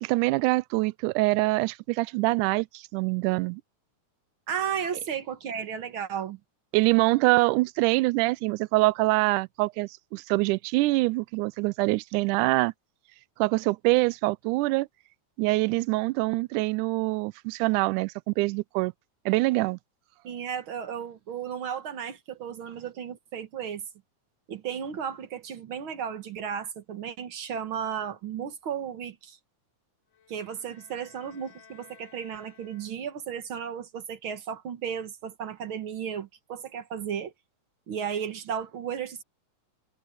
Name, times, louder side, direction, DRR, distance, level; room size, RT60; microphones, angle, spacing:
voice 1, 0.0-3.6 6.7-12.7 13.4-14.9 15.4-18.9 19.3-19.8, right 22 dB, 80° right, 2.0 m, -25 dB
voice 2, 4.5-6.4 20.2-23.8 24.5-29.4 30.3-37.3 37.9-39.2, right 8 dB, 55° right, 1.7 m, -34 dB
sound 1, 30.1-33.3, left 7 dB, 85° left, 7.0 m, -56 dB
omnidirectional pair, 3.7 m